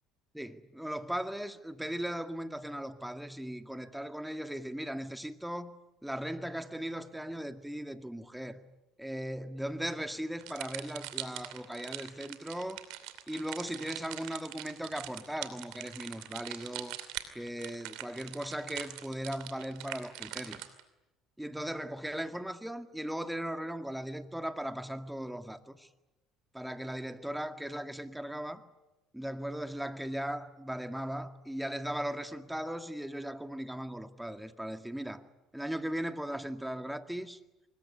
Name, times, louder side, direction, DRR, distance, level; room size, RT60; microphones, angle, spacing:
voice 1, 0.3-5.8 6.0-8.6 9.0-12.8 13.3-17.0 17.3-20.6 21.4-25.9 26.5-28.6 29.1-35.2 35.5-37.4, equal, 5° right, 2.1 m, -38 dB
sound 1, 10.4-20.8, right 15 dB, 75° right, 2.7 m, -42 dB
24.5 x 21.0 x 9.8 m
hypercardioid pair, 70°, 0 cm